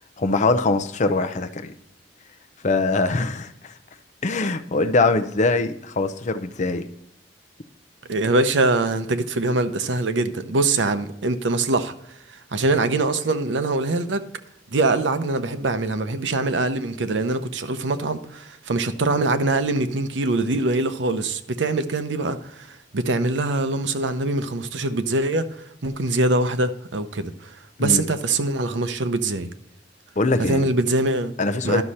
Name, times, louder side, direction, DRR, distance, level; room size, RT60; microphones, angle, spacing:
voice 1, 0.2-1.7 2.6-3.7 4.2-6.9 27.8-28.0 30.2-30.6 31.4-31.8, left 3 dB, 40° left, 0.6 m, -22 dB
voice 2, 8.1-11.9 12.5-14.2 14.7-25.5 25.8-27.5 27.8-29.5 30.5-31.3 31.6-31.8, right 2 dB, 85° right, 0.7 m, -23 dB
12.0 x 6.3 x 4.2 m
head